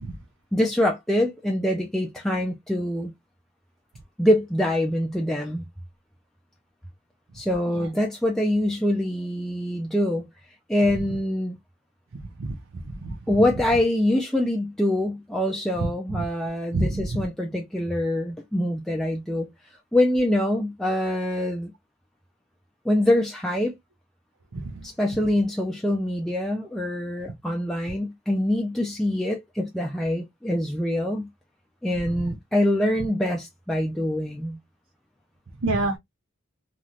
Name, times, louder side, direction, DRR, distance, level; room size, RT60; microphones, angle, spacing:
voice 1, 0.5-3.1 4.2-5.6 7.3-10.3 10.7-11.6 13.3-21.7 22.9-23.8 24.8-31.3 31.8-34.6, left 1 dB, ahead, 0.3 m, -24 dB
voice 2, 16.7-17.2 24.5-24.7 32.2-32.3 35.6-36.0, right 2 dB, 75° right, 0.6 m, -27 dB
3.1 x 2.4 x 2.6 m
head